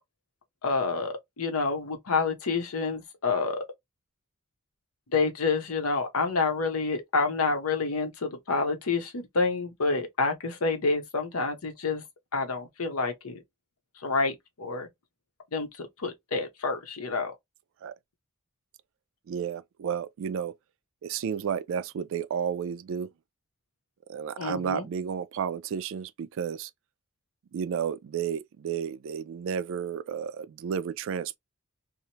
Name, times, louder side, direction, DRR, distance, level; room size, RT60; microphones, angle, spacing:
voice 1, 0.6-3.6 5.1-12.0 12.3-13.4 14.0-14.9 15.5-17.3 24.4-24.9, left 4 dB, 75° left, 0.8 m, -28 dB
voice 2, 19.3-20.5 21.0-23.1 24.1-26.7 27.5-31.4, right 7 dB, 60° right, 0.3 m, -32 dB
2.8 x 2.1 x 2.8 m
head